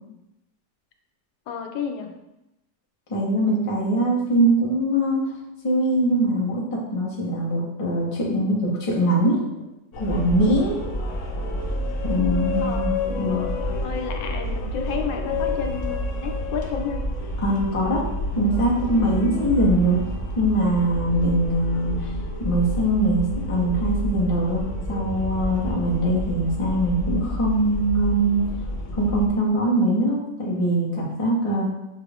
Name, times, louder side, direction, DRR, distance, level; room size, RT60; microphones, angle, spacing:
voice 1, 1.5-2.1 12.6-17.0, left 6 dB, 85° left, 4 dB, 1.3 m, -32 dB
voice 2, 3.1-5.3 5.6-9.4 10.0-10.8 12.0-13.6 17.4-18.0 18.3-20.1 20.3-22.0 22.4-28.4 28.9-31.6, right 1 dB, 25° left, -5 dB, 0.7 m, -22 dB
sound 1, 9.9-29.3, left 1 dB, 65° left, 0.8 m, -29 dB
6.0 x 2.4 x 3.4 m, 0.92 s
omnidirectional pair, 1.9 m